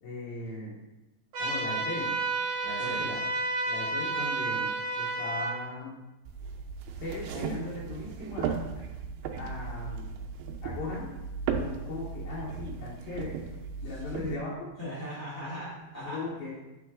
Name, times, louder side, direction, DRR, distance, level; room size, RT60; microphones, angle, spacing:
voice 1, 0.0-0.7 1.4-2.2 2.8-3.2 3.7-5.9 7.0-8.8 9.3-10.1 10.6-11.1 11.5-13.4 13.8-14.7 16.0-16.5, left 3 dB, 85° left, -7 dB, 2.9 m, -38 dB
sound 1, 1.3-5.5, right 3 dB, 50° right, 2.1 m, -31 dB
voice 2, 2.6-3.1 13.8-14.2 14.8-16.2, left 1 dB, 10° left, -10 dB, 1.3 m, -39 dB
sound 2, 6.3-14.4, right 6 dB, 85° right, 2.3 m, -36 dB
8.2 x 3.7 x 3.6 m, 1.0 s
omnidirectional pair, 4.1 m